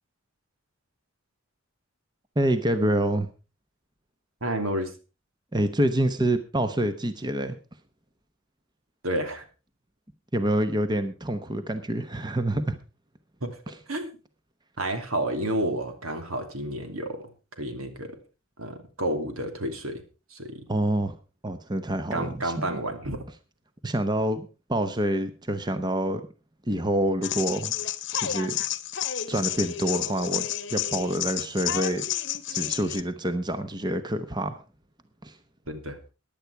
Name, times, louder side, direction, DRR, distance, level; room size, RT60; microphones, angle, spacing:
voice 1, 2.4-3.3 5.5-7.6 10.3-12.8 20.7-21.2 21.4-22.8 23.8-26.2 26.7-27.7 28.1-28.6 29.3-32.0 32.5-34.6 35.2-35.4, right 1 dB, 20° right, 10 dB, 0.9 m, -27 dB
voice 2, 4.4-4.9 9.0-9.4 13.4-13.6 13.9-14.1 14.8-17.2 17.6-18.2 18.6-20.0 20.3-20.6 22.1-23.2 35.7-36.0, right 1 dB, 85° right, 6 dB, 2.9 m, -30 dB
sound 1, 27.2-33.0, left 11 dB, 55° left, 0.9 m, -30 dB
15.5 x 10.5 x 4.7 m, 0.33 s
head